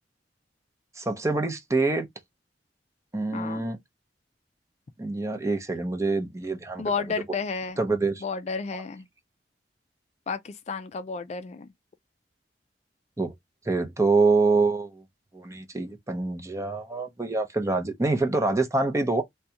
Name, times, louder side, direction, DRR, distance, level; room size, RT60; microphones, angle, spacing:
voice 1, 1.0-2.1 3.1-3.8 5.0-6.8 7.3-7.4 7.8-8.2 8.7-8.8 13.2-13.3 13.7-15.0 15.3-19.2, right 3 dB, 15° right, 0.6 m, -25 dB
voice 2, 3.3-3.7 6.8-7.8 8.2-9.0 10.3-11.7, left 5 dB, 40° left, 0.4 m, -32 dB
3.6 x 2.2 x 2.8 m
head